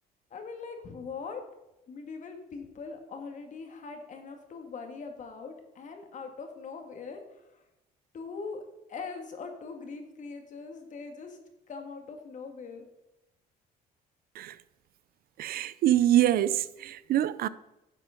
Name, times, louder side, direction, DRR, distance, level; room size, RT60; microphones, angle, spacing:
voice 1, 0.3-1.4 1.9-7.6 8.1-8.6 8.9-11.4 11.7-12.8, left 4 dB, 45° left, 2.1 m, -41 dB
voice 2, 15.4-17.5, right 12 dB, 60° right, 0.5 m, -25 dB
11.0 x 7.4 x 5.2 m
cardioid pair, 110°, 17 cm